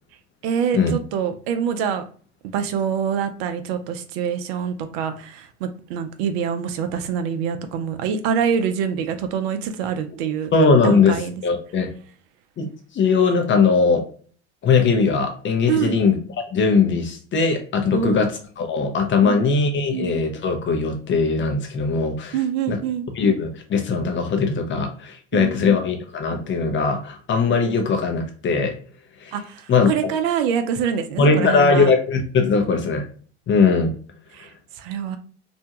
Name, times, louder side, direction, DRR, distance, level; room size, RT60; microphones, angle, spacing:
voice 1, 0.4-2.0 2.5-10.5 10.8-11.3 15.7-16.1 17.9-18.3 19.2-19.4 19.9-20.2 22.3-23.1 25.3-25.8 29.3-31.9 34.3-35.2, right 7 dB, 70° right, 0.5 m, -25 dB
voice 2, 10.5-11.2 11.4-12.0 12.6-12.7 12.9-14.1 14.6-16.2 16.5-18.3 18.6-22.4 22.7-22.8 23.2-28.8 29.2-29.3 29.7-29.9 31.2-33.1 33.5-33.9, left 4 dB, 35° left, 0.7 m, -20 dB
2.6 x 2.2 x 2.8 m
hypercardioid pair, 70°, 32 cm